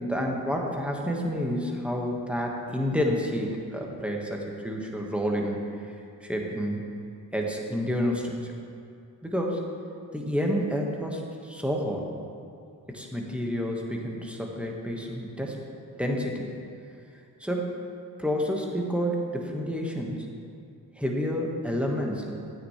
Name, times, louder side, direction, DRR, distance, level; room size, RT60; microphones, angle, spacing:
voice 1, 0.0-5.6 6.2-6.8 7.3-8.5 9.2-9.7 10.1-12.0 12.9-15.6 16.0-16.5 17.4-17.7 18.2-20.3 21.0-22.3, equal, 5° right, 0 dB, 1.7 m, -29 dB
12.0 x 8.8 x 3.4 m, 2.4 s
supercardioid pair, 45°, 42 cm